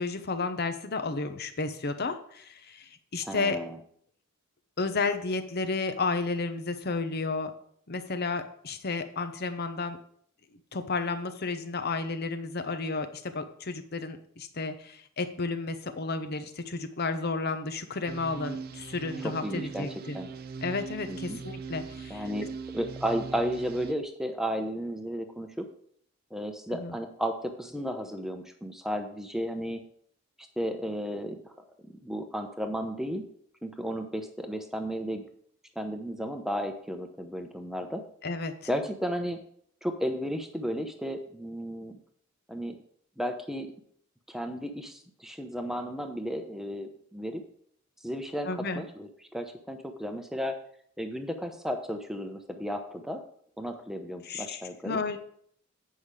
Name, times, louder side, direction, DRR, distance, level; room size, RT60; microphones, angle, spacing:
voice 1, 0.0-3.6 4.8-7.5 7.9-10.0 10.7-20.2 20.6-22.3 26.7-27.0 38.2-38.5 48.4-48.8 54.2-55.2, left 3 dB, 50° left, 9 dB, 0.8 m, -32 dB
voice 2, 3.2-3.8 19.2-19.9 20.1-20.3 21.1-21.4 22.1-22.5 22.7-25.7 26.3-29.8 30.6-31.5 31.8-33.2 33.6-35.2 35.8-38.0 38.7-39.4 39.8-41.9 42.5-42.8 43.2-43.7 44.3-47.4 48.0-50.6 51.0-53.2 53.6-55.0, equal, ahead, 6 dB, 0.8 m, -33 dB
sound 1, 18.1-23.9, right 5 dB, 45° right, 0.5 m, -40 dB
8.6 x 5.6 x 4.8 m, 0.63 s
head